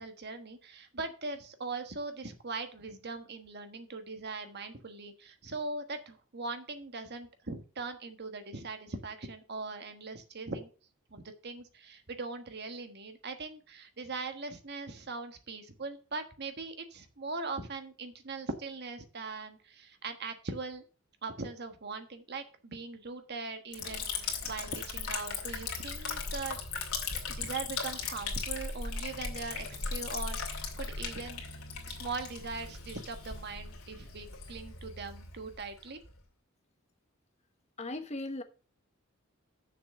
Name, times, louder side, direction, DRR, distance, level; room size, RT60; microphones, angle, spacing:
voice 1, 0.0-10.7 11.1-20.8 21.2-26.6 27.3-31.4 31.9-36.0, right 3 dB, 50° right, 1.4 m, -40 dB
Liquid, 23.7-36.2, left 5 dB, 90° left, 2.4 m, -38 dB
voice 2, 37.8-38.4, left 2 dB, 30° left, 1.1 m, -37 dB
6.8 x 6.3 x 6.5 m
head